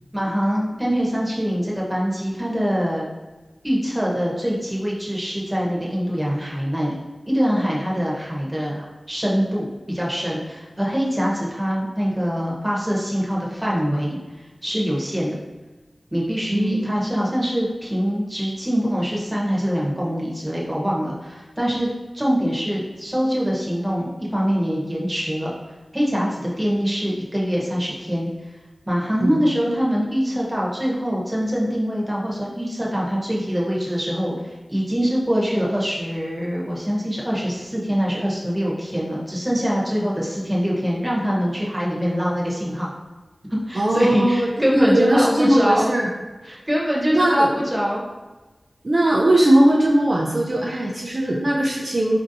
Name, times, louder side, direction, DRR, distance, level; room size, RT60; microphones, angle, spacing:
voice 1, 0.1-3.0 3.6-7.0 7.3-15.3 16.1-21.9 22.1-25.5 25.9-28.3 28.9-42.9 43.5-45.9 46.5-48.0, equal, 20° right, -4 dB, 0.9 m, -23 dB
voice 2, 16.5-16.9 29.2-29.4 43.7-46.1 47.1-47.5 48.8-52.2, right 1 dB, 50° right, -2 dB, 0.4 m, -19 dB
4.3 x 2.6 x 2.7 m, 1.2 s
wide cardioid pair, 70°, 0 cm